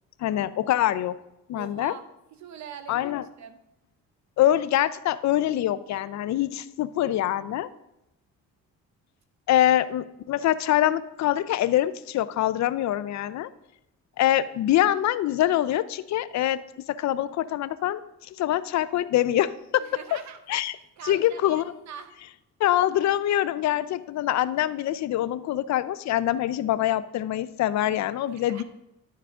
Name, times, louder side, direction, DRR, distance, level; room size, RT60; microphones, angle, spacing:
voice 1, 0.2-1.2 1.5-1.9 2.9-3.2 4.4-7.7 9.5-13.5 14.2-16.6 16.9-20.2 20.5-20.8 21.0-21.6 22.6-28.6, left 13 dB, 65° left, 15 dB, 0.5 m, -24 dB
voice 2, 1.5-2.0 2.3-3.6 19.8-20.4 21.0-22.1 28.3-28.6, right 8 dB, 65° right, 9 dB, 0.9 m, -43 dB
11.0 x 4.6 x 3.6 m, 0.88 s
cardioid pair, 90°, 30 cm